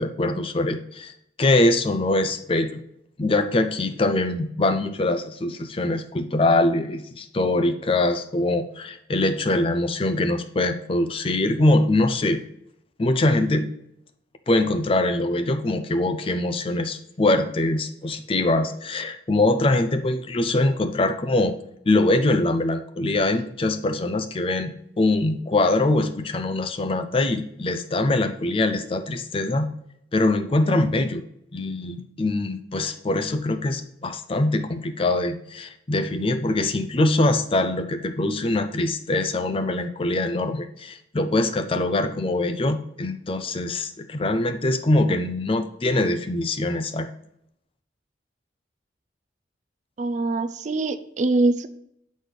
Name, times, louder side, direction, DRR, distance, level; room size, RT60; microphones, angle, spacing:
voice 1, 0.0-2.8 3.2-12.4 13.0-13.7 14.5-21.5 21.9-29.7 30.1-31.2 31.5-47.1, left 2 dB, 30° left, 8 dB, 0.5 m, -23 dB
voice 2, 50.0-51.7, right 2 dB, 40° right, 11 dB, 0.4 m, -23 dB
7.8 x 4.1 x 3.4 m, 0.73 s
head